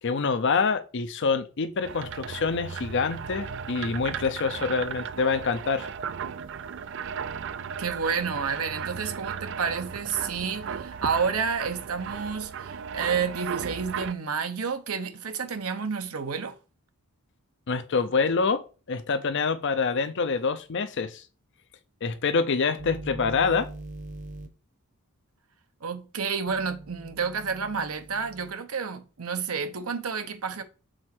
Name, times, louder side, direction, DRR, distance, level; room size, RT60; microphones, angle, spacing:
voice 1, 0.0-5.9 17.7-18.6 18.9-21.2 22.0-23.7, left 5 dB, 55° left, 0.6 m, -26 dB
sound 1, 1.8-14.1, right 7 dB, 55° right, 0.4 m, -36 dB
voice 2, 7.8-16.6 25.8-30.6, right 6 dB, 75° right, 0.9 m, -30 dB
sound 2, 22.8-24.5 26.5-28.5, right 2 dB, 35° right, 1.0 m, -41 dB
6.3 x 4.3 x 4.3 m
head